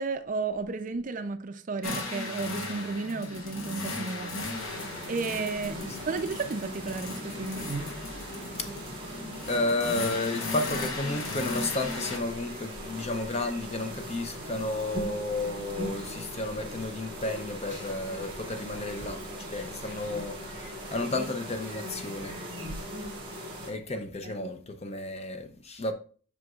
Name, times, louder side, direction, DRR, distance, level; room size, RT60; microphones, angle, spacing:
voice 1, 0.0-4.4 5.1-5.8 6.0-7.7 24.2-24.5, right 4 dB, 40° right, 0.4 m, -33 dB
sound 1, 1.8-12.2, left 2 dB, 85° left, 1.1 m, -36 dB
sound 2, 4.5-23.7, equal, 25° right, 1.9 m, -40 dB
voice 2, 9.0-22.4 23.0-23.1 23.6-25.9, left 2 dB, 30° left, 0.6 m, -32 dB
sound 3, 10.6-21.1, equal, 60° left, 2.0 m, -49 dB
7.6 x 5.2 x 2.3 m
head